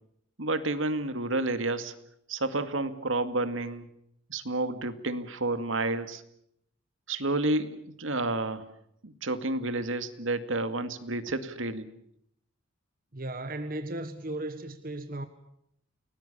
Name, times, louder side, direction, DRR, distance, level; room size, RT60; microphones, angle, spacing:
voice 1, 0.4-2.0 2.3-3.9 4.3-6.2 7.1-8.7 9.0-11.9, right 2 dB, 70° right, 10 dB, 2.2 m, -30 dB
voice 2, 13.1-15.3, right 1 dB, 45° right, 10 dB, 1.4 m, -36 dB
30.0 x 20.0 x 6.9 m, 0.72 s
head